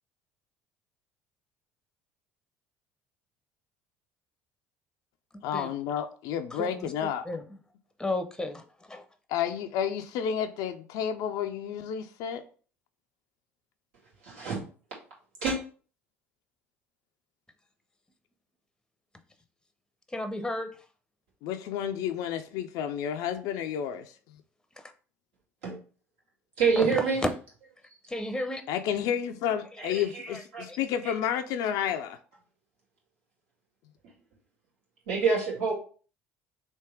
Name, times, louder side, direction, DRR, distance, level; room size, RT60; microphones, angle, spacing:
voice 1, 5.4-7.2 9.3-12.4 21.4-24.1 28.7-32.2, left 9 dB, 65° left, 0.4 m, -31 dB
voice 2, 7.2-7.6 8.0-9.0 20.1-20.7 24.8-24.9 26.8-26.9 27.2-27.3 28.1-28.6 29.9-30.4 30.7-30.8, left 1 dB, 10° left, 0.7 m, -33 dB
voice 3, 14.2-14.6 15.4-15.6 25.6-25.8 26.6-27.2 29.8-30.6 35.1-35.7, right 5 dB, 75° right, 2.0 m, -27 dB
3.5 x 2.9 x 4.4 m
hypercardioid pair, 65°, 7 cm